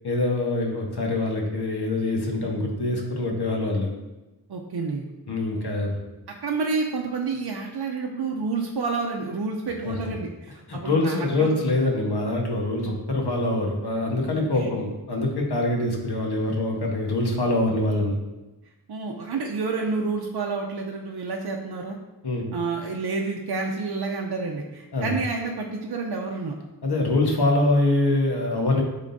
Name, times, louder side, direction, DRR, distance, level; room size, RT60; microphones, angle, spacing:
voice 1, 0.0-3.9 5.3-6.0 9.8-10.0 10.7-18.1 22.2-22.5 24.9-25.1 26.8-28.8, left 2 dB, 80° left, 0 dB, 1.2 m, -24 dB
voice 2, 4.5-5.0 6.4-11.5 14.3-14.7 18.9-22.0 22.5-26.6, right 4 dB, 80° right, 1 dB, 0.6 m, -29 dB
10.5 x 3.7 x 2.6 m, 1.0 s
wide cardioid pair, 65°, 39 cm